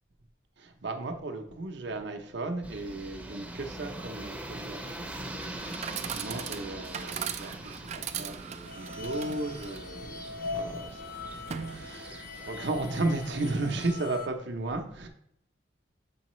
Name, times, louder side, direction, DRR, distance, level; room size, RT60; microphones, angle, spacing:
voice 1, 0.6-15.1, right 2 dB, 60° right, 0.8 m, -35 dB
sound 1, 2.6-13.9, right 1 dB, 5° right, 0.7 m, -43 dB
Chatter / Coin (dropping), 5.3-12.3, right 8 dB, 35° right, 0.3 m, -40 dB
sound 2, 8.7-14.3, left 3 dB, 50° left, 0.5 m, -41 dB
7.0 x 4.6 x 3.1 m
head